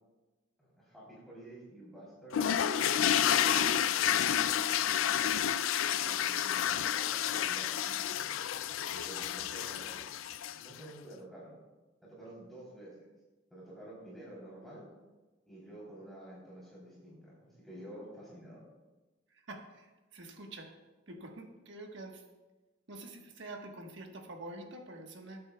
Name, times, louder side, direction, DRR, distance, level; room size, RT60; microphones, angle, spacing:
voice 1, 0.6-3.5 3.7-5.3 5.9-8.3 8.9-10.1 10.6-11.6 12.0-12.9 13.5-14.9 15.5-18.6, right 1 dB, ahead, -8 dB, 3.4 m, -50 dB
sound 1, 2.3-10.8, left 10 dB, 85° left, 0.4 m, -30 dB
voice 2, 19.5-19.9 20.1-20.7 21.1-22.2 22.9-25.4, right 2 dB, 65° right, 3 dB, 1.3 m, -46 dB
19.0 x 8.5 x 2.3 m, 1.2 s
head